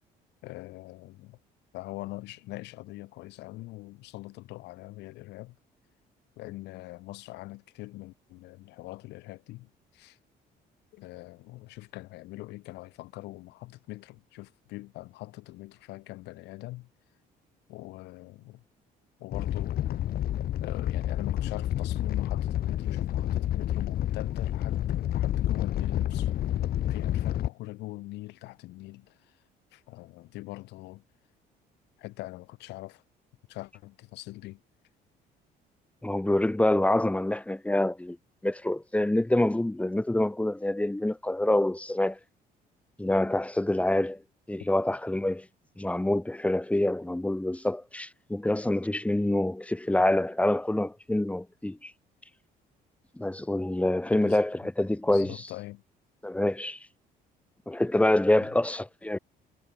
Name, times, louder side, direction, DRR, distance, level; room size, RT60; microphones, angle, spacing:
voice 1, 0.4-1.4 1.7-5.6 6.4-10.2 10.9-16.9 17.7-18.6 19.2-20.1 20.6-26.3 26.9-29.4 29.7-31.0 32.0-33.0 33.5-34.6 44.6-44.7 54.1-54.4 55.1-55.8 58.4-58.5, left 19 dB, 85° left, 7.4 m, -43 dB
Animal, 19.3-27.5, left 12 dB, 65° left, 6.9 m, -29 dB
voice 2, 36.0-38.2 38.4-42.2 43.0-44.2 44.5-45.4 45.8-51.9 53.2-55.4 56.2-56.8 57.7-59.2, left 1 dB, 5° left, 6.7 m, -26 dB
cardioid pair, 110°, 17 cm